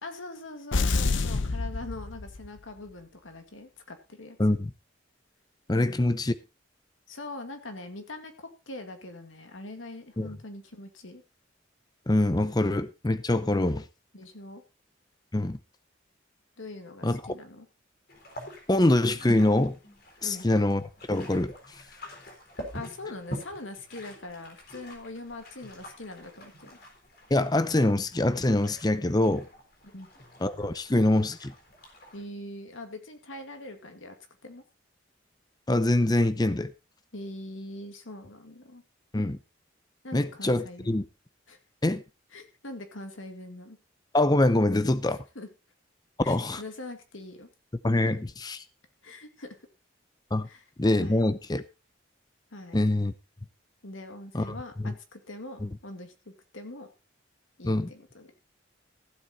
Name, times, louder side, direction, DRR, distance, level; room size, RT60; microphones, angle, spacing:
voice 1, 0.0-4.4 5.8-6.1 7.1-11.2 14.1-14.6 16.6-17.7 20.2-20.5 22.7-26.8 29.9-30.1 32.1-34.2 34.4-34.6 37.1-38.8 40.0-41.0 41.5-41.6 42.3-43.8 45.4-45.5 46.2-47.5 49.0-49.6 50.4-50.6 51.0-51.3 52.5-52.8 53.8-56.9 57.6-58.3, left 2 dB, 90° left, 2.2 m, -42 dB
sound 1, 0.7-2.6, left 3 dB, 75° left, 0.8 m, -27 dB
voice 2, 5.7-6.3 10.2-10.3 12.1-13.8 15.3-15.6 17.0-17.2 18.7-19.8 20.2-20.8 21.1-21.5 27.3-29.5 30.4-31.5 35.7-36.7 39.1-39.4 40.1-41.0 41.8-42.0 44.1-45.2 46.3-46.6 47.8-48.6 50.3-50.5 50.8-51.6 52.7-53.1 54.3-54.6 54.8-54.9 55.6-55.7 57.6-57.9, left 1 dB, 20° left, 0.6 m, -24 dB
sound 2, 18.1-32.2, equal, 50° left, 3.9 m, -45 dB
15.0 x 7.9 x 4.1 m
head